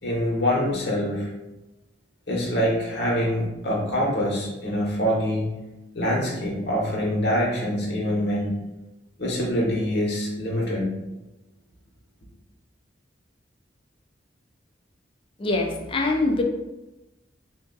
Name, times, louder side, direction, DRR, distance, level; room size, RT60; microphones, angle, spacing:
voice 1, 0.0-1.3 2.3-5.5 5.9-8.5 9.2-10.9, equal, 65° left, -3 dB, 1.2 m, -25 dB
voice 2, 15.4-16.4, left 2 dB, 30° left, 2 dB, 0.4 m, -23 dB
3.6 x 2.5 x 3.8 m, 1.0 s
head